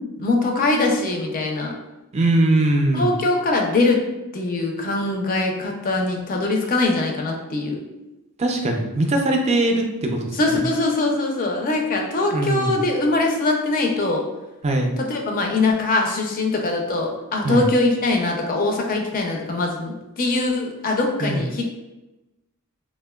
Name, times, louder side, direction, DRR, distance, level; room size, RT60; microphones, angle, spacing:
voice 1, 0.2-1.7 2.9-4.0 4.3-7.8 10.3-14.2 15.0-21.6, left 2 dB, 40° left, 1 dB, 0.4 m, -22 dB
voice 2, 2.1-3.2 8.4-10.2 10.5-10.6 12.3-12.8 14.6-14.9 17.4-17.7 21.2-21.4, right 1 dB, 30° right, 2 dB, 0.4 m, -21 dB
3.5 x 2.1 x 2.2 m, 1.0 s
head